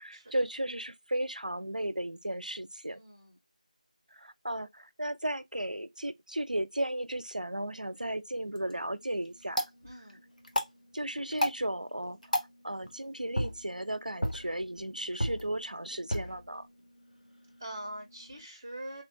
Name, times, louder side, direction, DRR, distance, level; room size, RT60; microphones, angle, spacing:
voice 1, 0.0-3.0 4.1-9.7 10.9-16.7, right 1 dB, 80° right, 0.5 m, -35 dB
voice 2, 2.9-3.4 9.8-10.2 17.6-19.0, right 1 dB, 10° right, 0.6 m, -43 dB
sound 1, 8.4-18.4, left 1 dB, 75° left, 1.2 m, -37 dB
3.3 x 2.4 x 3.7 m
figure-of-eight pair, 170°, 4 cm